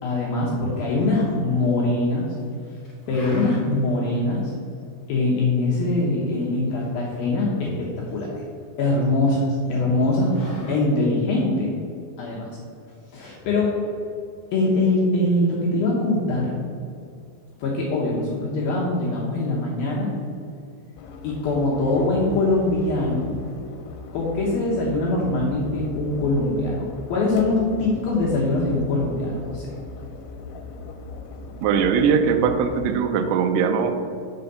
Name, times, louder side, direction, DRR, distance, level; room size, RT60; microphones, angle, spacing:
voice 1, 0.0-2.3 3.1-4.5 5.1-8.4 8.8-10.3 10.7-11.8 12.2-12.6 13.1-13.7 14.5-16.6 17.6-20.1 21.2-23.3 24.1-29.6, left 2 dB, 75° left, -4 dB, 2.2 m, -23 dB
sound 1, 0.9-1.7 2.1-2.6 2.9-3.9 4.3-4.4 4.7-5.2 5.7-7.5 7.8-9.0 9.3-9.4 9.7-10.8, left 2 dB, 55° left, 3.1 m, -40 dB
sound 2, 21.0-33.0, left 2 dB, 90° left, 3.0 m, -39 dB
voice 2, 31.6-34.1, right 6 dB, 85° right, 8 dB, 2.9 m, -20 dB
6.8 x 4.1 x 6.6 m, 2.4 s
omnidirectional pair, 5.3 m